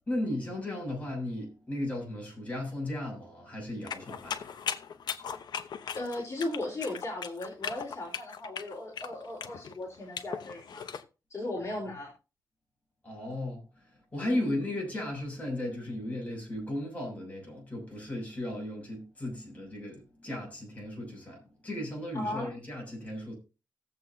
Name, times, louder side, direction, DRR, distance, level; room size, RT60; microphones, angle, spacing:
voice 1, 0.1-4.6 13.0-13.6 14.1-23.3, left 1 dB, 20° left, 6.6 m, -35 dB
sound 1, 3.9-11.0, left 7 dB, 80° left, 0.9 m, -38 dB
voice 2, 5.9-10.8 11.3-12.1 14.2-14.4 22.1-22.5, left 1 dB, 40° left, 3.8 m, -37 dB
18.0 x 7.7 x 2.7 m
wide cardioid pair, 135°, 7 cm